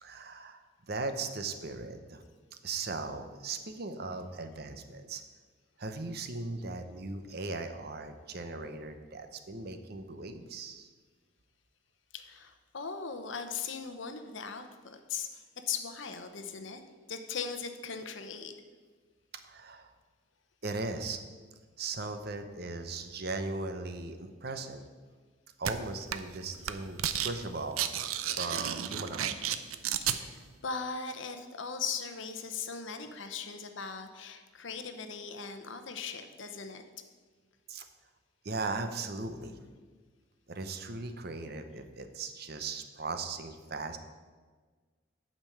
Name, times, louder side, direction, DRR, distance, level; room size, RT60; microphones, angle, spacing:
voice 1, 0.0-2.2 2.6-5.2 5.8-10.9 19.4-19.9 20.6-21.2 21.8-24.8 25.6-29.4 37.7-37.9 38.4-39.6 40.5-44.0, right 3 dB, 50° right, 8 dB, 0.7 m, -38 dB
voice 2, 12.1-16.8 17.1-18.5 30.0-36.8, left 5 dB, 65° left, 8 dB, 0.8 m, -39 dB
sound 1, 25.6-25.7 26.1-26.4 26.6-27.3 27.6-30.2, right 10 dB, 85° right, 0.5 m, -32 dB
8.9 x 5.2 x 7.7 m, 1.5 s
head